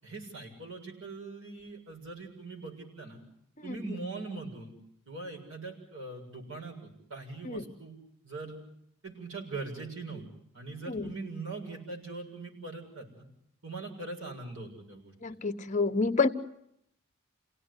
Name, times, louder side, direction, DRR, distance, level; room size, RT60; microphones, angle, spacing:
voice 1, 0.0-3.2 3.6-4.7 5.1-8.0 8.2-8.6 9.0-10.2 10.5-13.2 13.6-15.1, right 3 dB, 70° right, 1 dB, 7.0 m, -41 dB
voice 2, 15.2-16.3, left 4 dB, 35° left, 9 dB, 1.1 m, -28 dB
29.5 x 17.5 x 9.9 m, 0.76 s
head